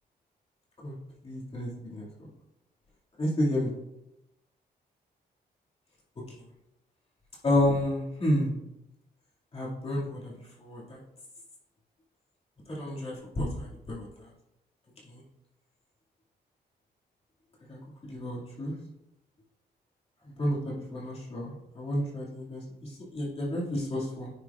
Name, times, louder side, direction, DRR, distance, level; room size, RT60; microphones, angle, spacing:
voice 1, 1.2-2.1 3.2-3.7 7.4-8.6 9.5-10.3 10.6-11.0 12.7-14.1 15.1-15.2 17.7-17.8 18.1-18.7 20.4-24.3, left 1 dB, 35° left, -5 dB, 2.0 m, -30 dB
9.8 x 6.2 x 2.4 m, 0.88 s
wide cardioid pair, 145°, 17 cm